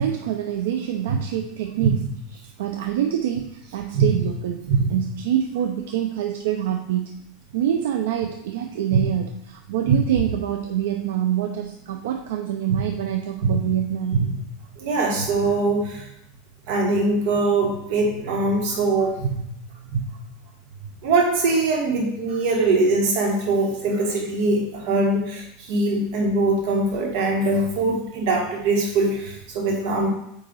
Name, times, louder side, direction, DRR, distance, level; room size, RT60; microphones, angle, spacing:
voice 1, 0.0-2.1 2.3-7.2 7.5-14.2, right 10 dB, 80° right, 4 dB, 0.5 m, -26 dB
voice 2, 3.7-4.2 4.7-5.0 8.9-9.1 9.8-10.0 12.7-12.8 13.4-13.6 14.1-14.3 14.8-16.1 16.7-19.5 19.9-20.0 21.0-30.1, right 3 dB, 55° right, 0 dB, 1.7 m, -22 dB
8.4 x 2.8 x 4.0 m, 0.78 s
supercardioid pair, 170°, 0 cm